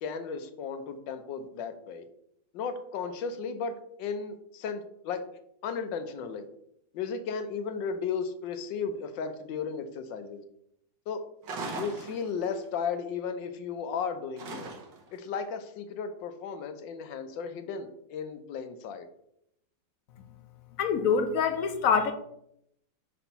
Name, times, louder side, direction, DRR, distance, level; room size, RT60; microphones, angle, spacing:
voice 1, 0.0-2.1 2.5-5.2 5.6-6.5 6.9-10.4 11.1-11.2 11.6-14.7 15.1-19.1, left 6 dB, 85° left, 8 dB, 1.4 m, -35 dB
sound 1, 11.4-12.7 14.4-15.1, right 3 dB, 80° right, 1.9 m, -39 dB
voice 2, 20.8-22.1, left 6 dB, 65° left, 8 dB, 0.9 m, -25 dB
5.0 x 4.3 x 5.5 m, 0.75 s
omnidirectional pair, 2.0 m